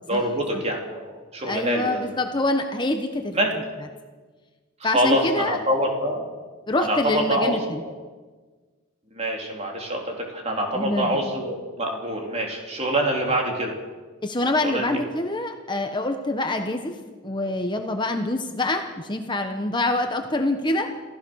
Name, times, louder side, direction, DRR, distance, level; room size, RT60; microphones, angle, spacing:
voice 1, 0.1-2.0 3.3-3.5 4.8-6.2 6.8-7.9 9.1-13.7 14.6-15.0, right 1 dB, 30° right, 0 dB, 3.8 m, -25 dB
voice 2, 1.5-3.4 4.8-5.6 6.7-7.8 10.7-11.4 14.2-17.0 17.2-20.9, left 2 dB, 20° left, 5 dB, 1.1 m, -25 dB
28.0 x 15.0 x 6.4 m, 1.4 s
head